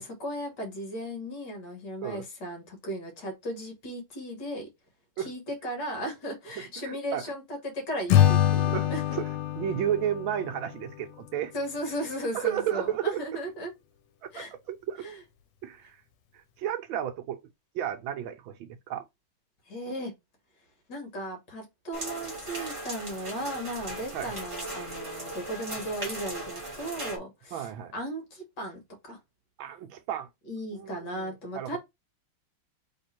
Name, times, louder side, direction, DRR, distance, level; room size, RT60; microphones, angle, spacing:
voice 1, 0.0-4.7 5.2-9.0 11.5-13.7 14.3-14.5 15.0-15.2 19.7-20.1 20.9-28.8 29.1-29.2 30.5-31.8, right 1 dB, 55° left, 1.9 m, -36 dB
voice 2, 6.6-7.2 8.5-9.2 9.6-11.5 12.3-13.2 14.3-15.1 15.6-16.0 16.6-17.4 17.7-19.0 24.1-24.3 27.5-27.9 29.6-30.3 30.7-31.8, right 10 dB, 75° right, 1.3 m, -33 dB
Acoustic guitar / Strum, 8.1-11.4, left 11 dB, 90° left, 1.5 m, -25 dB
sound 1, 21.9-27.2, right 1 dB, 20° right, 1.0 m, -38 dB
3.6 x 3.3 x 4.3 m
omnidirectional pair, 2.3 m